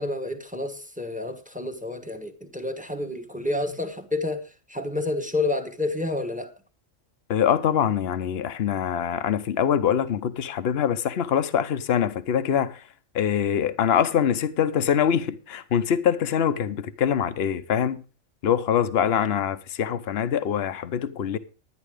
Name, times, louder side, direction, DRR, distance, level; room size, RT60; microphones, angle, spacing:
voice 1, 0.0-4.4 4.7-6.5, left 2 dB, 5° right, 1.1 m, -29 dB
voice 2, 7.3-12.8 13.1-18.0 18.4-21.4, left 8 dB, 55° left, 1.0 m, -24 dB
11.0 x 10.5 x 4.9 m
omnidirectional pair, 1.4 m